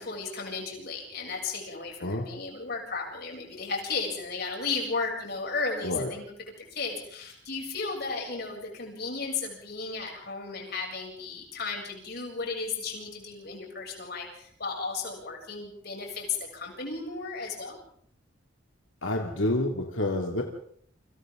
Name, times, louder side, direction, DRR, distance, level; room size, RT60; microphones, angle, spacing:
voice 1, 0.0-6.2 6.7-16.3 16.5-17.8, left 4 dB, 55° left, 0 dB, 7.3 m, -34 dB
voice 2, 19.0-20.4, left 1 dB, 90° left, 2 dB, 2.4 m, -28 dB
29.0 x 26.5 x 3.8 m, 0.63 s
head